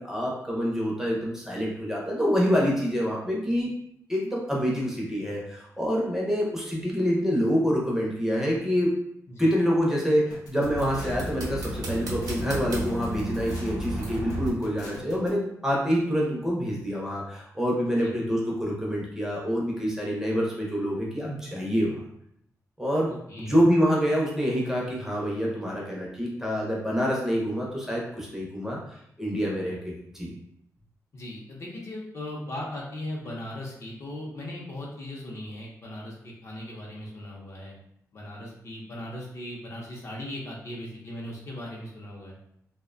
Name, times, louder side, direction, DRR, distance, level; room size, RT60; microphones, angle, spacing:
voice 1, 0.0-3.7 4.1-8.9 9.4-22.0 22.8-23.1 23.4-28.8 29.2-30.3, equal, 5° right, -4 dB, 0.5 m, -26 dB
sound 1, 10.3-15.3, left 2 dB, 90° left, 0.6 m, -44 dB
sound 2, 10.6-14.5, right 1 dB, 85° right, 0.6 m, -33 dB
voice 2, 23.1-23.5 31.1-37.7 38.1-42.3, left 1 dB, 50° left, -2 dB, 0.6 m, -38 dB
2.4 x 2.1 x 2.4 m, 0.74 s
wide cardioid pair, 150°, 6 cm